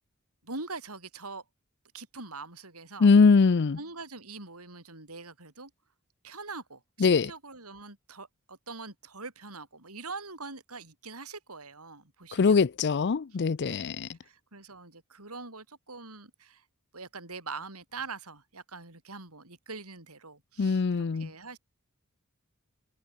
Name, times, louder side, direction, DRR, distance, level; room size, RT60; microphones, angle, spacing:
voice 1, 0.4-1.4 1.9-3.1 3.8-5.7 6.2-12.6 13.6-16.6 16.9-21.6, right 3 dB, 85° right, 7.8 m, -43 dB
voice 2, 3.0-3.8 7.0-7.3 12.4-14.1 20.6-21.3, left 4 dB, 50° left, 0.5 m, -22 dB
head